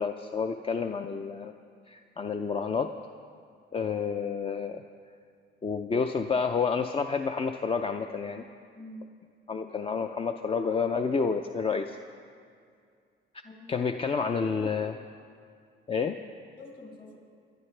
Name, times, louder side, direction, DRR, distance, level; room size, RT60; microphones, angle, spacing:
voice 1, 0.0-1.5 1.9-2.9 3.7-4.8 5.6-8.4 9.5-12.0 13.7-15.0 15.9-16.2, left 5 dB, 30° left, 6 dB, 0.5 m, -29 dB
voice 2, 8.7-9.1 13.4-14.4 16.6-17.2, left 2 dB, 50° left, -2 dB, 4.5 m, -47 dB
25.0 x 11.0 x 3.3 m, 2.3 s
cardioid pair, 90°, 20 cm